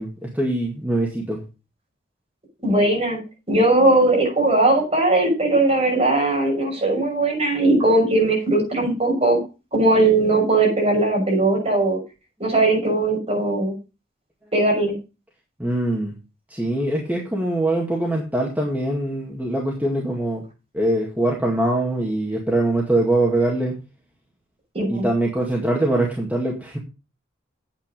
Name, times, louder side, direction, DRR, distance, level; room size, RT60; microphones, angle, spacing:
voice 1, 0.0-1.4 15.6-16.1 16.5-20.4 20.7-23.8 24.9-26.8, right 1 dB, 10° right, -2 dB, 2.0 m, -23 dB
voice 2, 2.6-3.2 3.5-9.4 9.7-12.0 12.4-13.7 14.5-14.9 24.7-25.1, right 2 dB, 30° right, -2 dB, 6.2 m, -19 dB
9.1 x 8.8 x 5.1 m, 0.30 s
head